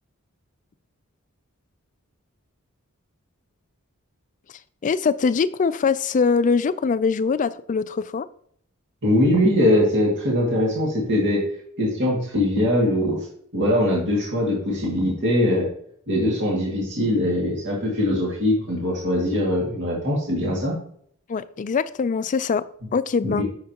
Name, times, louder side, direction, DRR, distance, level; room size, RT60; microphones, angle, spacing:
voice 1, 4.8-8.3 21.3-22.6 22.9-23.4, left 5 dB, 35° left, 15 dB, 0.3 m, -22 dB
voice 2, 9.0-11.4 11.8-13.2 13.5-15.7 16.1-20.7 23.2-23.4, left 1 dB, 55° right, -4 dB, 2.1 m, -21 dB
8.8 x 6.5 x 2.9 m, 0.63 s
head